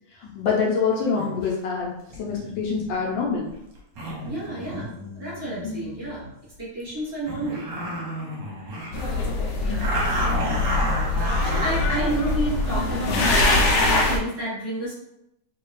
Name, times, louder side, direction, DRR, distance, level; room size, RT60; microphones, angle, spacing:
voice 1, 0.1-3.5 5.6-5.9 9.7-10.0, left 5 dB, 70° left, -2 dB, 1.3 m, -26 dB
sound 1, 1.2-1.5 2.1-6.3 6.8-6.9 7.3-9.2 9.8-13.0, right 1 dB, 65° right, 1.3 m, -32 dB
voice 2, 4.2-6.3 6.6-7.7 9.6-10.2 11.1-14.9, right 1 dB, 30° right, -8 dB, 1.3 m, -30 dB
sound 2, 8.9-14.2, left 2 dB, 85° left, 0.9 m, -23 dB
3.2 x 2.7 x 3.0 m, 0.82 s
omnidirectional pair, 2.4 m